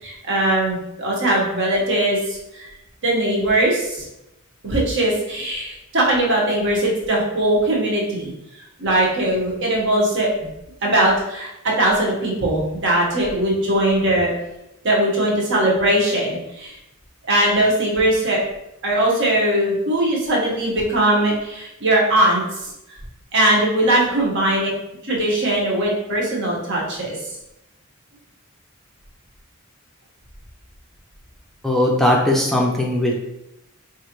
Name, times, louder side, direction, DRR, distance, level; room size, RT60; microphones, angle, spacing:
voice 1, 0.0-2.7 3.0-4.1 4.6-8.3 8.8-10.3 10.8-14.3 14.8-16.8 17.3-18.4 18.8-22.7 23.3-24.7 25.0-27.2, right 1 dB, 60° right, -3 dB, 1.1 m, -20 dB
voice 2, 31.6-33.2, left 1 dB, ahead, -2 dB, 0.5 m, -18 dB
4.7 x 2.5 x 2.9 m, 0.88 s
head